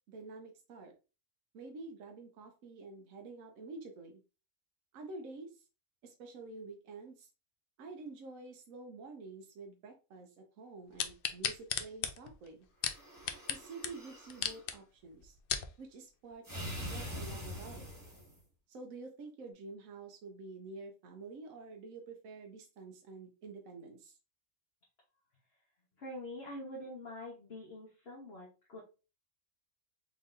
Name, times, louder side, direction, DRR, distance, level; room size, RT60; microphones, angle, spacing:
voice 1, 0.1-0.9 1.5-4.2 4.9-5.6 6.0-7.3 7.8-12.7 13.5-15.4 15.8-17.9 18.7-24.2, right 3 dB, 70° right, 3 dB, 1.1 m, -48 dB
sound 1, 11.0-13.6 13.8-13.9 14.3-14.7 15.2-15.7 16.3-16.4, left 8 dB, 80° left, 0.5 m, -35 dB
sound 2, 12.9-14.6 16.4-18.4, equal, 15° right, 1.4 m, -44 dB
voice 2, 26.0-28.8, left 1 dB, 45° left, -4 dB, 1.3 m, -45 dB
4.2 x 3.5 x 2.6 m, 0.32 s
omnidirectional pair, 1.5 m